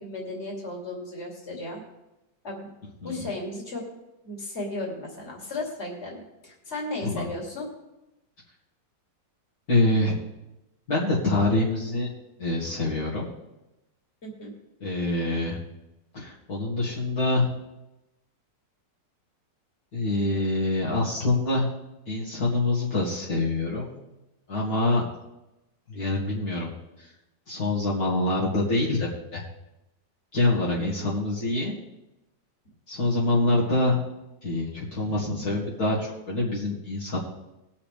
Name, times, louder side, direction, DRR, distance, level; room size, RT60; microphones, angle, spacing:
voice 1, 0.0-1.8 2.4-2.7 3.0-3.9 4.2-7.7 14.2-14.5 31.0-31.1 35.0-35.6, left 2 dB, 40° left, -1 dB, 2.8 m, -35 dB
voice 2, 9.7-10.2 10.9-12.1 12.4-13.3 14.8-15.6 16.1-17.5 19.9-21.7 22.1-24.0 24.5-25.0 25.9-26.7 27.0-27.1 27.5-29.4 30.3-31.7 32.9-34.0 34.4-37.2, left 2 dB, 60° left, -6 dB, 2.5 m, -25 dB
21.0 x 7.0 x 3.4 m, 0.95 s
omnidirectional pair, 1.9 m